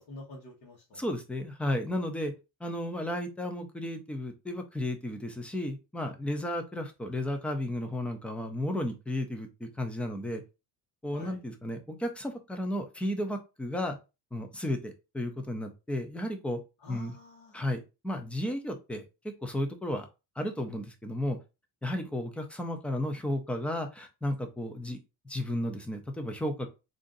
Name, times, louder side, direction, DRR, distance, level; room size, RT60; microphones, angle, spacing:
voice 1, 0.0-1.0 11.1-11.4 16.8-17.5, left 2 dB, 85° left, -5 dB, 1.7 m, -47 dB
voice 2, 0.9-2.3 2.6-10.4 11.0-14.0 14.3-16.6 16.9-17.1 17.5-17.8 18.0-19.0 19.4-20.1 20.4-21.4 21.8-25.0 25.2-26.7, left 1 dB, 5° left, 6 dB, 0.3 m, -33 dB
3.7 x 2.5 x 3.8 m, 0.27 s
cardioid pair, 160°, 44 cm